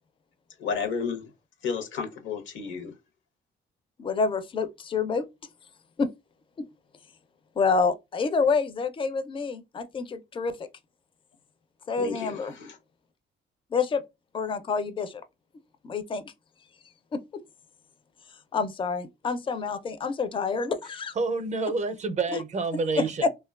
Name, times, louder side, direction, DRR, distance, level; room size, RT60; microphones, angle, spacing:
voice 1, 0.6-1.2 1.6-2.9 12.0-12.8, left 6 dB, 75° left, 0.8 m, -32 dB
voice 2, 4.0-5.3 6.0-6.1 6.6-6.7 7.6-10.6 11.9-12.6 13.7-14.0 14.3-15.2 15.8-16.2 17.1-17.2 18.5-21.1 23.2-23.3, left 4 dB, 25° left, 0.4 m, -27 dB
voice 3, 21.1-23.3, right 4 dB, 35° right, 0.5 m, -28 dB
2.7 x 2.2 x 2.2 m
cardioid pair, 90°, 20 cm